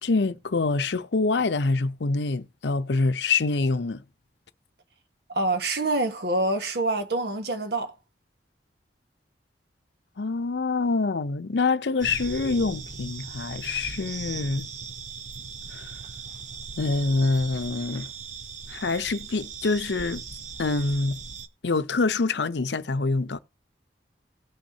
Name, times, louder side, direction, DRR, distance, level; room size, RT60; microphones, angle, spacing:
voice 1, 0.0-4.0 10.2-14.7 15.7-15.9 16.8-18.1 18.7-20.2 20.6-21.2 21.6-23.4, left 3 dB, 80° left, 0.6 m, -25 dB
voice 2, 5.3-7.9, right 2 dB, 65° right, 1.5 m, -26 dB
sound 1, 12.0-21.5, right 5 dB, 45° right, 0.9 m, -39 dB
18.0 x 6.3 x 2.8 m
head